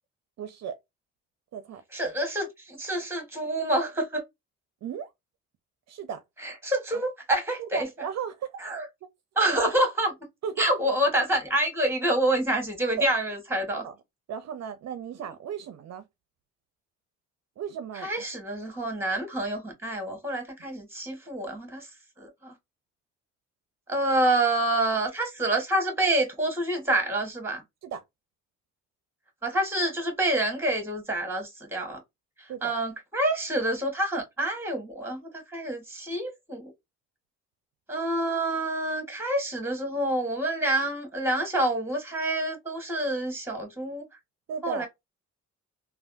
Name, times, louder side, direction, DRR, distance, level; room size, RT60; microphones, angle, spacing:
voice 1, 0.4-0.8 1.5-1.8 4.8-5.1 5.9-6.2 6.9-7.0 7.6-8.6 10.4-10.6 13.0-13.1 13.8-13.9 14.3-16.0 17.6-18.1 27.8-28.0 32.5-32.7 44.5-44.9, right 8 dB, 60° right, 0.5 m, -35 dB
voice 2, 1.9-4.2 6.4-7.9 8.6-8.8 9.4-10.1 10.6-13.8 18.0-21.9 22.2-22.5 23.9-27.6 29.4-32.0 32.6-36.7 37.9-44.0 44.6-44.9, right 1 dB, 10° right, 1.8 m, -27 dB
3.3 x 2.4 x 2.5 m
cardioid pair, 90°, 30 cm